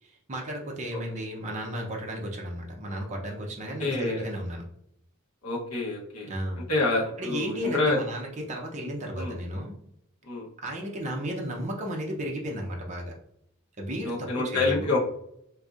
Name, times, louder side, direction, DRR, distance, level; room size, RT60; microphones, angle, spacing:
voice 1, 0.0-4.6 6.2-6.6 7.2-9.8 10.6-13.1 13.8-15.0, equal, 30° right, -1 dB, 0.6 m, -34 dB
voice 2, 3.8-4.3 5.4-6.3 6.7-8.0 9.2-9.3 10.3-10.5 14.0-15.0, left 2 dB, 80° left, -3 dB, 0.9 m, -27 dB
4.7 x 2.6 x 2.4 m, 0.74 s
head